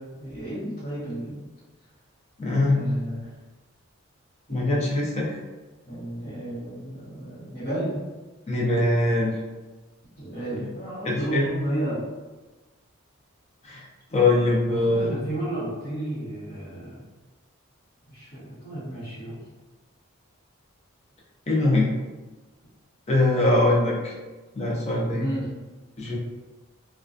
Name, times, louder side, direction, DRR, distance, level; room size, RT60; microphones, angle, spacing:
voice 1, 0.0-1.4 2.7-3.3 4.5-4.9 5.9-8.0 10.2-12.1 14.7-17.0 18.1-19.4 25.1-25.5, right 1 dB, 45° left, -10 dB, 1.0 m, -33 dB
voice 2, 2.4-2.8 4.5-5.4 8.5-9.3 11.0-11.5 13.6-13.8 14.1-15.1 21.5-21.9 23.1-24.1 24.5-25.3 26.0-26.2, left 2 dB, 30° left, -4 dB, 0.4 m, -22 dB
2.3 x 2.2 x 2.4 m, 1.2 s
head